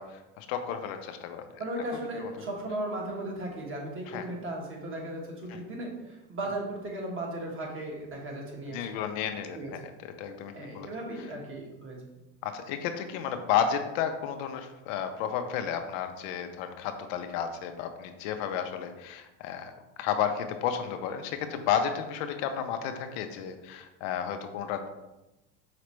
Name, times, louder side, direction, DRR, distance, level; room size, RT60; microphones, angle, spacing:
voice 1, 0.0-1.4 2.2-2.3 4.1-4.2 5.5-5.6 8.7-10.9 12.4-19.7 20.0-24.9, left 8 dB, 75° left, 7 dB, 0.6 m, -32 dB
voice 2, 1.6-8.9 9.5-9.7 10.5-12.0, right 1 dB, 30° right, -1 dB, 1.3 m, -36 dB
5.0 x 3.2 x 3.1 m, 1.0 s
supercardioid pair, 110°, 39 cm